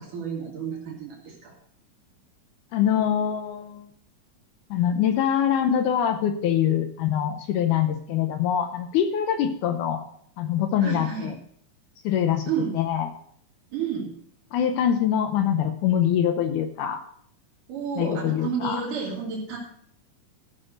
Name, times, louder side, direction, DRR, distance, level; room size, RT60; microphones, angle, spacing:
voice 1, 0.0-1.5 10.8-11.3 12.5-12.8 13.7-14.1 17.7-19.6, right 6 dB, 75° right, -3 dB, 3.7 m, -31 dB
voice 2, 2.7-3.9 4.7-10.0 10.4-11.4 12.0-12.4 12.7-13.1 14.5-17.0 18.0-18.8, left 9 dB, 80° left, 7 dB, 2.2 m, -24 dB
14.0 x 6.4 x 5.1 m, 0.63 s
omnidirectional pair, 3.7 m